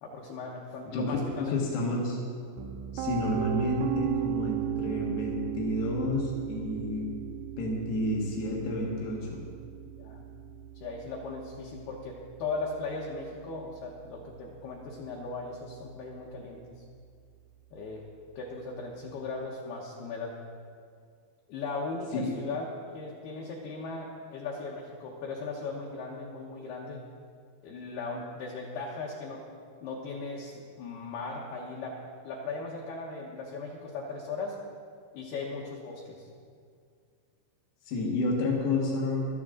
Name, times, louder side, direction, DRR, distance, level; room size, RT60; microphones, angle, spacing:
voice 1, 0.0-1.5 10.0-10.3 10.8-16.6 17.7-18.0 18.4-20.4 21.5-22.7 22.9-27.0 27.6-29.4 29.8-32.0 32.2-34.6 35.1-36.3, left 3 dB, 75° left, -3 dB, 2.4 m, -38 dB
voice 2, 0.9-2.2 2.9-7.1 7.6-9.4 22.1-22.3 37.9-39.2, left 2 dB, 90° left, -2 dB, 4.4 m, -30 dB
Piano, 2.6-14.5, right 11 dB, 80° right, 2.9 m, -37 dB
17.0 x 12.5 x 3.8 m, 2.2 s
omnidirectional pair, 5.9 m